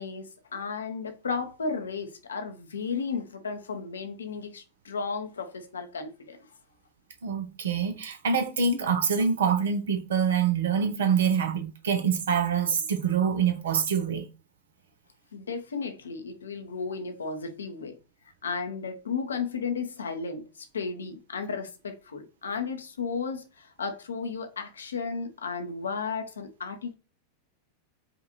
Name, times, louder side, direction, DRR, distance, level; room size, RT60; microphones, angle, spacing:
voice 1, 0.0-6.4 15.3-18.0 18.4-26.9, left 5 dB, 70° left, 0.7 m, -34 dB
voice 2, 7.2-14.3, right 6 dB, 60° right, 0.8 m, -25 dB
5.0 x 2.5 x 2.9 m
figure-of-eight pair, 90°, 0 cm